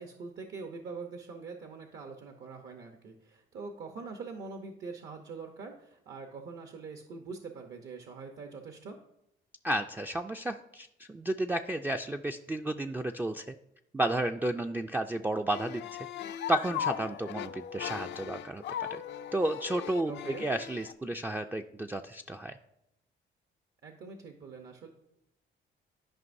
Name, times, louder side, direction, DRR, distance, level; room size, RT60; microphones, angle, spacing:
voice 1, 0.0-9.0 20.1-20.5 23.8-24.9, right 4 dB, 65° right, 4 dB, 0.9 m, -44 dB
voice 2, 9.6-13.5 13.9-16.1 16.5-19.0 19.3-22.6, right 1 dB, 10° right, 5 dB, 0.3 m, -32 dB
sound 1, 15.5-20.9, left 10 dB, 65° left, 0.4 m, -38 dB
12.5 x 5.2 x 2.6 m, 0.82 s
cardioid pair, 90°, 20 cm